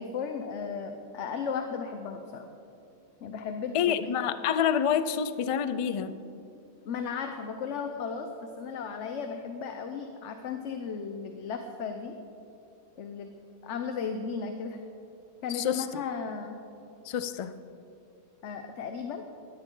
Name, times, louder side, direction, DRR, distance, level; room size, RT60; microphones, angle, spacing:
voice 1, 0.0-2.5 3.2-4.3 6.8-12.2 13.0-13.3 13.6-14.8 15.4-16.6 18.4-19.2, left 6 dB, 75° left, 6 dB, 1.1 m, -35 dB
voice 2, 3.7-6.1 15.5-15.9 17.0-17.6, left 8 dB, 55° left, 12 dB, 0.3 m, -27 dB
17.0 x 13.0 x 3.8 m, 2.7 s
omnidirectional pair, 1.2 m